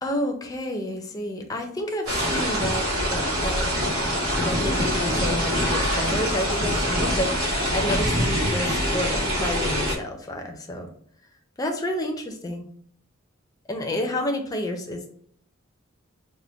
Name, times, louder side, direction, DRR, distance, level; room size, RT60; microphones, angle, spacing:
voice 1, 0.0-3.7 4.4-10.9 11.6-12.7 13.7-15.1, left 1 dB, 20° left, 3 dB, 0.5 m, -30 dB
sound 1, 2.1-10.0, equal, 85° right, 1.2 m, -24 dB
3.4 x 2.1 x 3.7 m, 0.63 s
head